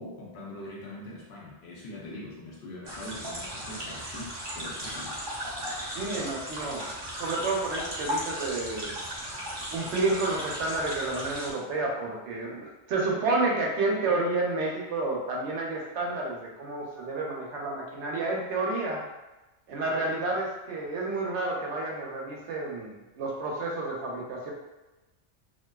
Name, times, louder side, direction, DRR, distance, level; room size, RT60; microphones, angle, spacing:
voice 1, 0.0-5.2, left 1 dB, 65° left, -3 dB, 0.8 m, -42 dB
sound 1, 2.9-11.5, equal, 40° right, 0.3 m, -36 dB
voice 2, 5.9-8.9 9.7-19.0 19.7-24.5, right 2 dB, 80° right, -1 dB, 0.9 m, -30 dB
2.5 x 2.2 x 2.2 m, 1.1 s
omnidirectional pair, 1.2 m